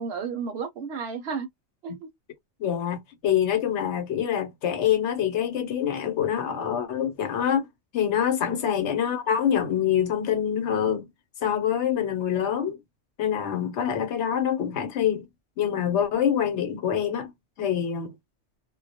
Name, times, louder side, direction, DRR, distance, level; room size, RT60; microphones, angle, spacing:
voice 1, 0.0-1.5 1.8-2.1 8.4-8.7, right 5 dB, 65° right, 0.8 m, -33 dB
voice 2, 2.6-7.7 7.9-11.1 11.4-12.8 13.2-15.2 15.6-17.3 17.6-18.1, left 9 dB, 75° left, 1.0 m, -25 dB
2.3 x 2.1 x 2.7 m
omnidirectional pair, 1.2 m